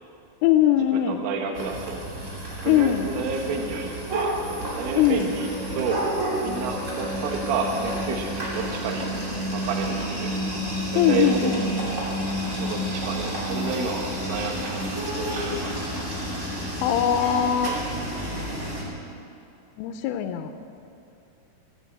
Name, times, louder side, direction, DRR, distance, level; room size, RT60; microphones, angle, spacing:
voice 1, 0.4-1.2 2.7-3.1 5.0-5.3 11.0-11.7 16.8-17.8 19.8-20.5, left 10 dB, 90° left, 8 dB, 3.1 m, -21 dB
voice 2, 1.1-2.0 2.6-4.3 4.6-5.5 5.8-6.0 6.4-9.1 9.5-10.3 10.9-11.5 12.6-16.1, right 5 dB, 80° right, 2 dB, 3.6 m, -30 dB
sound 1, 1.5-18.8, right 1 dB, 20° right, 2.1 m, -30 dB
sound 2, 4.3-11.6, right 1 dB, 55° left, 3.5 m, -38 dB
15.5 x 9.2 x 7.8 m, 2.6 s
omnidirectional pair, 5.6 m